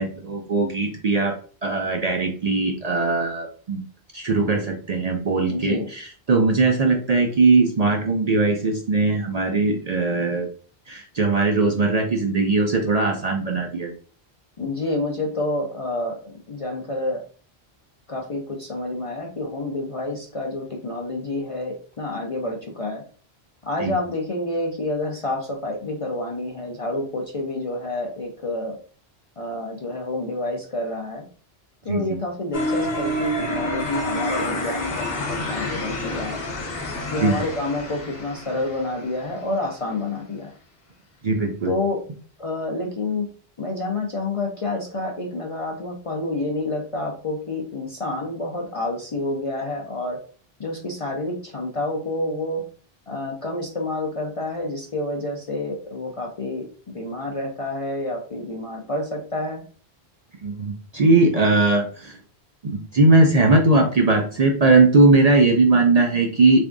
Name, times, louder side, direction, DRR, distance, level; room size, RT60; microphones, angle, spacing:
voice 1, 0.0-1.4 1.6-3.8 4.1-10.5 10.9-13.9 23.8-23.9 31.9-32.2 37.2-37.4 41.2-41.7 60.4-62.2 62.6-66.6, right 3 dB, 55° right, 2 dB, 0.5 m, -19 dB
voice 2, 5.5-5.9 14.6-17.2 18.1-23.0 23.7-28.8 29.4-31.2 31.8-36.4 37.1-40.5 41.7-42.0 42.4-43.3 43.6-50.2 50.6-52.6 53.1-56.7 56.9-59.6, left 2 dB, 45° left, 1 dB, 0.4 m, -28 dB
sound 1, 32.5-39.5, left 1 dB, 65° left, 1.0 m, -28 dB
3.4 x 3.4 x 2.5 m, 0.42 s
omnidirectional pair, 1.1 m